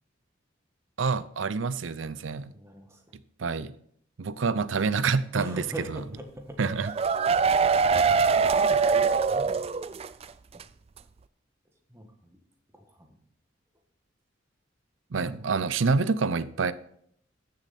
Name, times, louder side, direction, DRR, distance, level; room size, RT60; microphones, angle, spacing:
voice 1, 1.0-2.5 3.4-3.7 4.2-6.0 6.6-6.9 8.3-8.5 15.1-16.7, right 4 dB, 85° right, 0.6 m, -27 dB
voice 2, 2.5-3.0 5.4-6.6 8.4-10.0 10.5-10.6 11.9-12.4 12.7-13.2 15.3-15.5, right 1 dB, 15° right, 1.5 m, -41 dB
sound 1, 6.6-10.2 10.5-10.6 11.0-11.1, right 5 dB, 30° right, 0.3 m, -23 dB
14.5 x 6.7 x 4.2 m
head